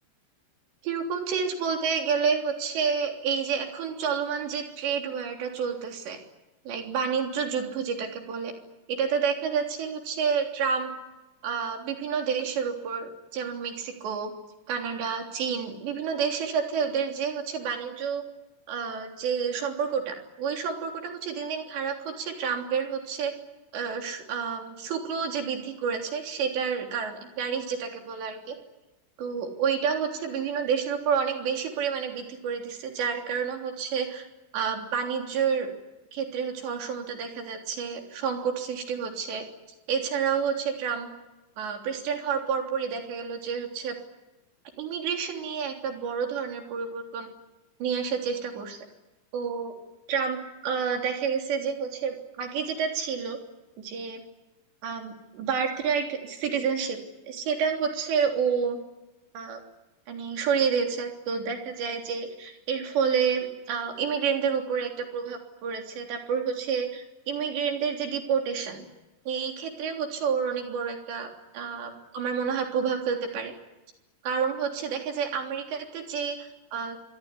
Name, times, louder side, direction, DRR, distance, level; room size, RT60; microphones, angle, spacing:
voice 1, 0.8-6.2 6.7-8.5 8.9-10.9 11.4-14.3 14.7-18.2 18.7-23.3 23.7-28.6 29.2-34.3 34.5-35.7 36.1-39.5 39.9-41.1 41.6-44.0 44.8-47.3 47.8-48.8 49.3-49.7 50.1-53.4 53.8-54.2 54.8-57.0 57.3-58.8 59.3-59.6 60.1-68.9 69.3-73.5 74.2-77.0, right 6 dB, 90° right, 3 dB, 5.6 m, -29 dB
25.5 x 22.5 x 9.8 m, 1.0 s
omnidirectional pair, 4.9 m